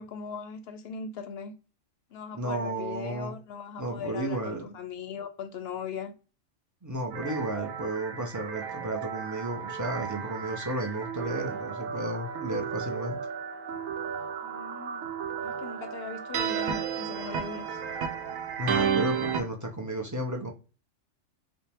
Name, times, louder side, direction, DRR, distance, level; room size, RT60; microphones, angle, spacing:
voice 1, 0.0-1.5 2.1-6.1 14.4-15.1 15.4-17.8, left 6 dB, 60° left, 0.7 m, -39 dB
voice 2, 2.3-3.3 3.8-4.6 6.8-13.2 18.6-20.5, right 1 dB, 25° right, 0.4 m, -33 dB
sound 1, 7.1-19.4, right 7 dB, 90° right, 1.0 m, -33 dB
5.1 x 2.1 x 3.4 m
omnidirectional pair, 1.3 m